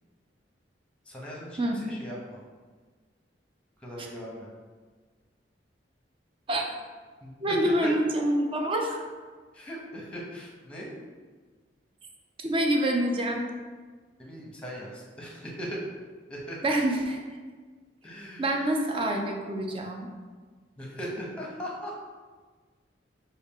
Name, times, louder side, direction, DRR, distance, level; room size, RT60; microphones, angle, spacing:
voice 1, 1.0-2.4 3.8-4.5 7.2-7.6 7.8-8.0 9.5-10.9 14.2-15.8 16.3-16.6 18.0-18.4 20.8-21.9, equal, 5° left, -3 dB, 0.9 m, -39 dB
voice 2, 7.4-9.0 12.4-13.4 16.6-17.2 18.4-20.1, right 1 dB, 30° right, 2 dB, 0.5 m, -26 dB
5.5 x 2.4 x 3.6 m, 1.4 s
head